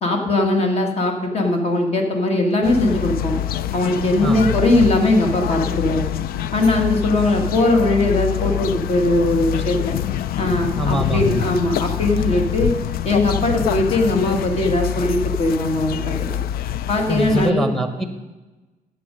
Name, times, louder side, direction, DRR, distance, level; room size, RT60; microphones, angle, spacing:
voice 1, 0.0-3.4 3.7-6.1 6.5-10.0 10.4-12.7 13.0-16.1 16.9-17.6, left 2 dB, 40° left, 3 dB, 1.8 m, -20 dB
sound 1, 2.6-17.5, left 11 dB, 70° left, 0.4 m, -25 dB
voice 2, 4.2-4.6 10.8-11.5 17.1-18.0, right 1 dB, ahead, 7 dB, 1.2 m, -23 dB
13.0 x 8.7 x 5.2 m, 1.1 s
cardioid pair, 160°, 16 cm